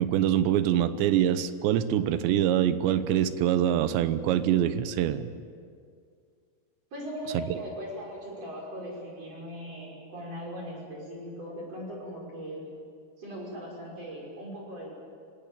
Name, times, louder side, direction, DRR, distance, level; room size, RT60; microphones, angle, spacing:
voice 1, 0.0-5.3 7.3-7.6, right 10 dB, 85° right, 12 dB, 3.2 m, -25 dB
voice 2, 6.9-12.7 13.2-15.0, equal, 35° right, -3 dB, 6.6 m, -39 dB
24.5 x 17.0 x 8.9 m, 2.2 s
omnidirectional pair, 5.0 m